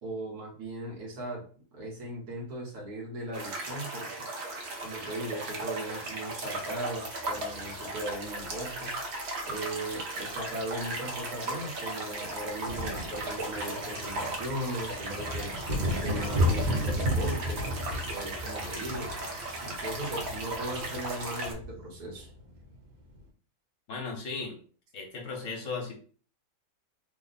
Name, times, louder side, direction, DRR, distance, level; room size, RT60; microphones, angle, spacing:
voice 1, 0.0-1.4 1.7-4.2 4.8-8.9 9.5-15.5 15.9-19.1 19.6-22.3, right 1 dB, 70° right, -2 dB, 1.7 m, -38 dB
sound 1, 3.3-21.5, right 2 dB, 55° right, 0.8 m, -37 dB
sound 2, 7.4-9.0 10.3-10.4 10.6-10.8 11.1-23.2, equal, 85° right, 1.7 m, -34 dB
voice 2, 23.9-24.6 24.9-25.9, left 4 dB, 55° left, 0 dB, 1.2 m, -36 dB
3.6 x 2.0 x 4.0 m, 0.41 s
omnidirectional pair, 1.7 m